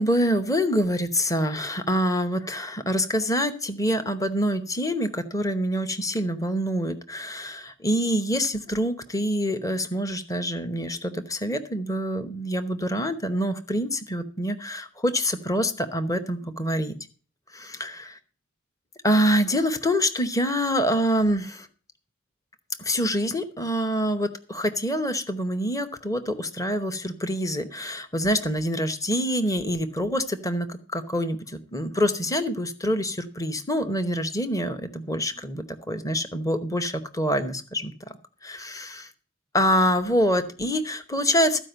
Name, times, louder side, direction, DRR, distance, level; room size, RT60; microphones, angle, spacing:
voice 1, 0.0-16.9 17.5-18.1 19.0-21.7 22.8-39.1 39.5-41.6, equal, 15° left, 9 dB, 0.9 m, -26 dB
14.0 x 5.1 x 7.9 m, 0.39 s
head